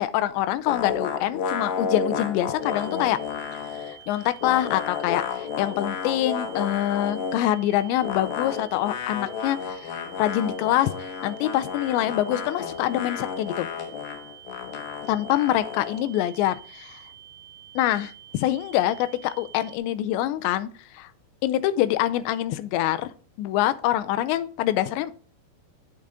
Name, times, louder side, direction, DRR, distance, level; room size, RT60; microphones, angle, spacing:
voice 1, 0.0-3.2 3.5-13.7 15.1-17.0 17.8-21.1 21.4-23.1 23.4-25.2, left 13 dB, 85° left, 12 dB, 2.9 m, -25 dB
sound 1, 0.7-4.0 4.2-7.5 8.0-16.0, left 6 dB, 65° left, 2.8 m, -32 dB
sound 2, 2.6-19.8, right 11 dB, 75° right, 2.2 m, -48 dB
8.7 x 8.0 x 3.7 m, 0.40 s
omnidirectional pair, 5.0 m